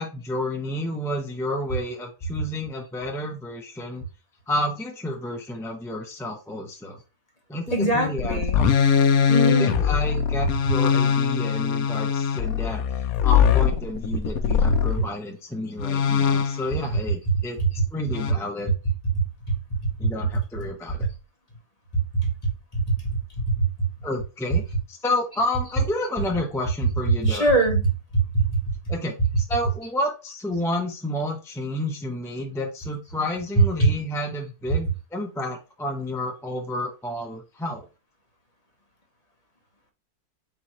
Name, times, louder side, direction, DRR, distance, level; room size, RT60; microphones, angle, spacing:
voice 1, 0.0-4.0 4.5-7.0 7.5-8.7 9.5-17.6 17.9-18.7 20.0-21.1 24.0-27.5 28.9-29.2 29.5-37.9, left 1 dB, 5° left, 1 dB, 0.3 m, -30 dB
voice 2, 7.7-8.6 9.3-9.7 17.8-17.9 19.2-19.5 20.0-20.4 21.0-21.1 22.1-22.3 22.7-23.7 27.2-28.7 33.8-33.9, right 2 dB, 30° left, 1 dB, 1.1 m, -23 dB
sound 1, 8.2-15.0 15.8-16.8 18.1-18.3, left 7 dB, 70° left, 1.1 m, -21 dB
4.6 x 3.8 x 3.0 m, 0.30 s
omnidirectional pair, 1.6 m